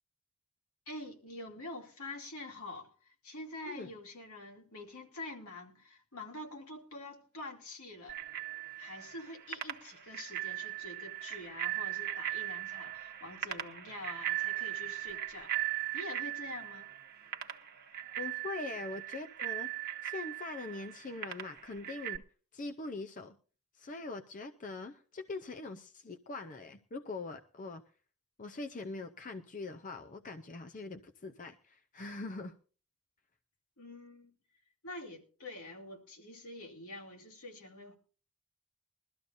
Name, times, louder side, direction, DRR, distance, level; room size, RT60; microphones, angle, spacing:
voice 1, 0.9-8.2 8.8-15.5 15.9-16.9 33.8-34.3 34.8-38.0, left 2 dB, 70° left, 2.5 m, -46 dB
Bicycle bell, 8.1-22.2, right 13 dB, 45° right, 1.0 m, -39 dB
voice 2, 18.2-19.7 20.0-22.2 22.5-23.4 23.7-27.8 28.4-32.5, left 3 dB, 35° left, 0.6 m, -42 dB
22.0 x 13.0 x 2.6 m
head